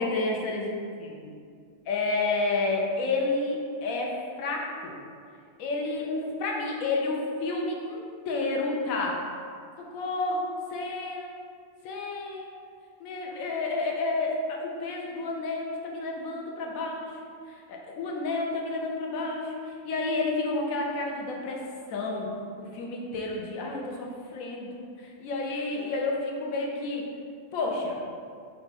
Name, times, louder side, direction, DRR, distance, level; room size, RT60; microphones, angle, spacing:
voice 1, 0.0-1.3 1.9-5.0 5.6-8.0 8.3-9.2 9.8-11.3 11.8-12.5 13.0-21.6 21.9-27.0 27.5-28.0, left 3 dB, 80° left, -1 dB, 1.1 m, -30 dB
4.4 x 2.3 x 4.0 m, 2.2 s
omnidirectional pair, 1.4 m